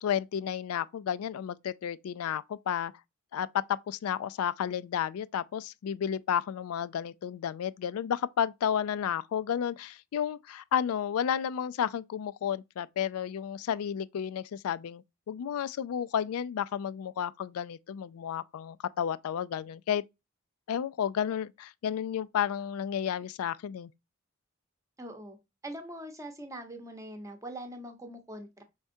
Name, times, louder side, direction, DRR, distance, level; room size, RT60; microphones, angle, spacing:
voice 1, 0.0-2.9 3.3-20.0 20.7-23.9, left 8 dB, 85° left, 0.3 m, -32 dB
voice 2, 25.0-25.4 25.6-28.6, right 1 dB, 15° right, 0.8 m, -42 dB
5.3 x 3.5 x 2.6 m
head